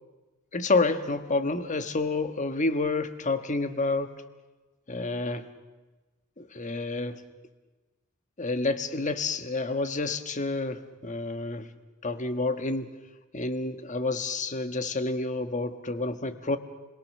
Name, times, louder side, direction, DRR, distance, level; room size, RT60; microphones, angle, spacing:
voice 1, 0.5-4.1 4.9-5.4 6.4-7.2 8.4-11.7 12.0-12.9 13.3-16.6, left 3 dB, 35° left, 9 dB, 1.4 m, -29 dB
30.0 x 22.0 x 6.7 m, 1.2 s
head